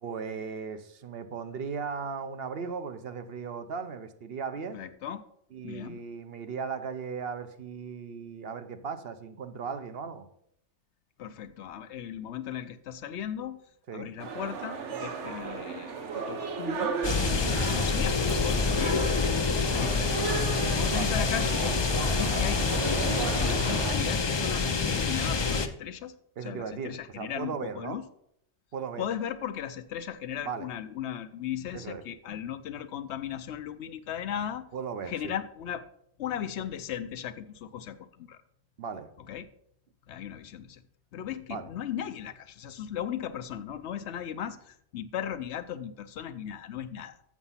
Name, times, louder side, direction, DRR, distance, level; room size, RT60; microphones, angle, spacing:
voice 1, 0.0-4.8 5.5-10.3 13.9-14.1 17.4-17.7 20.9-21.1 26.4-28.0 28.7-29.0 30.4-30.7 31.7-32.0 34.7-35.3 38.8-39.1 41.5-41.7, right 6 dB, 60° right, 9 dB, 0.9 m, -37 dB
voice 2, 4.7-5.2 5.6-6.0 11.2-13.6 13.9-17.0 17.3-19.0 19.6-20.4 20.7-21.7 22.1-26.2 26.4-28.0 29.0-34.7 35.1-35.8 36.2-38.4 39.3-39.4 40.1-40.8 41.1-47.2, left 9 dB, 75° left, 12 dB, 0.9 m, -37 dB
sound 1, 14.2-23.9, right 5 dB, 75° right, 1.3 m, -35 dB
sound 2, 17.0-25.7, left 4 dB, 35° left, 0.4 m, -27 dB
7.2 x 6.9 x 5.6 m, 0.71 s
omnidirectional pair, 1.2 m